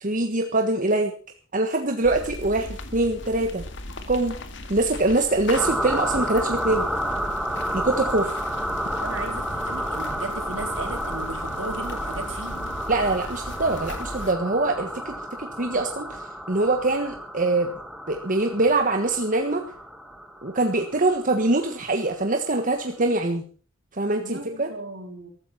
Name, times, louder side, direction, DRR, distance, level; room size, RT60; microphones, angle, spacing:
voice 1, 0.0-1.1 1.5-3.6 4.1-4.4 4.7-6.9 7.7-8.3 12.9-17.7 18.1-19.6 20.4-23.4 23.9-24.7, right 2 dB, 45° right, 4 dB, 1.5 m, -24 dB
sound 1, 2.0-14.3, left 1 dB, 65° left, 2.1 m, -38 dB
sound 2, 5.5-21.8, equal, ahead, 2.0 m, -31 dB
voice 2, 8.9-12.6 24.2-25.3, right 2 dB, 70° right, 4 dB, 4.3 m, -36 dB
15.0 x 13.5 x 5.8 m, 0.42 s
head